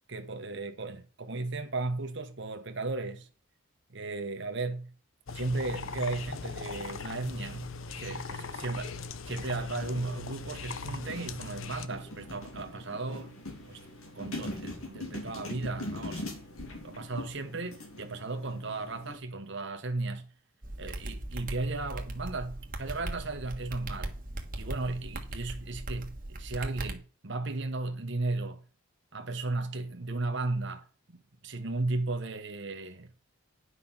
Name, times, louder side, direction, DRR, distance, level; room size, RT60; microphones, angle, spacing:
voice 1, 0.1-3.3 3.9-4.9 5.3-9.0 9.2-13.8 14.1-16.2 16.8-20.3 20.8-24.2 24.5-28.6 29.1-33.1, right 3 dB, 55° right, 1.3 m, -35 dB
sound 1, 5.3-11.9, left 4 dB, 70° left, 0.8 m, -40 dB
sound 2, 9.8-19.2, left 1 dB, 90° left, 2.5 m, -42 dB
sound 3, 20.6-26.9, right 1 dB, 40° right, 1.5 m, -39 dB
10.0 x 5.5 x 5.8 m
head